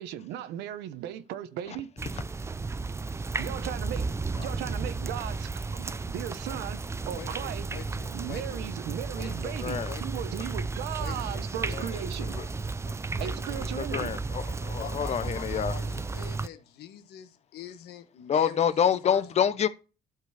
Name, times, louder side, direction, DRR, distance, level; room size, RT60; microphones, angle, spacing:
voice 1, 0.0-1.9 3.4-7.7 8.1-12.4 13.2-14.1, right 11 dB, 85° right, 1.0 m, -37 dB
sound 1, 2.0-16.5, right 3 dB, 15° right, 0.5 m, -33 dB
voice 2, 7.1-8.7 9.2-10.4 11.0-11.5 13.2-13.6 14.8-18.8 19.0-19.3, left 10 dB, 75° left, 1.5 m, -44 dB
voice 3, 9.2-9.9 11.7-11.8 12.3-12.4 12.9-13.0 13.7-15.7 18.3-19.7, left 8 dB, 40° left, 0.8 m, -27 dB
12.0 x 5.3 x 4.2 m
cardioid pair, 110°, 17 cm